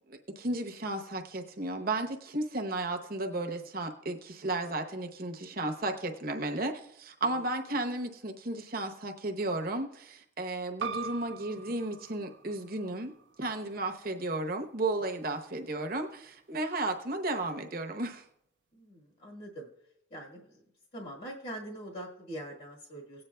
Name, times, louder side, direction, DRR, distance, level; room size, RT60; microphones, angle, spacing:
voice 1, 0.1-13.1 13.4-18.2, right 2 dB, 45° right, 4 dB, 0.9 m, -34 dB
sound 1, 10.8-16.0, right 6 dB, 65° right, 0.5 m, -44 dB
voice 2, 18.7-19.7 20.1-20.5 20.9-23.2, right 1 dB, 50° left, -3 dB, 1.6 m, -43 dB
18.0 x 8.7 x 2.3 m, 0.76 s
head